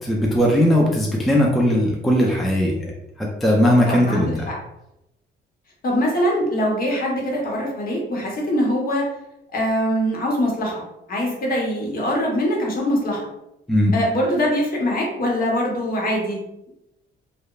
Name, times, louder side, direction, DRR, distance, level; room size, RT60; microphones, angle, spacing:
voice 1, 0.0-2.9 3.2-4.5 13.7-13.9, equal, ahead, -2 dB, 0.4 m, -18 dB
voice 2, 3.9-4.6 5.8-9.1 9.5-10.8 11.1-13.3 13.9-16.4, equal, 45° left, -1 dB, 0.8 m, -23 dB
2.8 x 2.0 x 2.3 m, 0.88 s
cardioid pair, 90°, 20 cm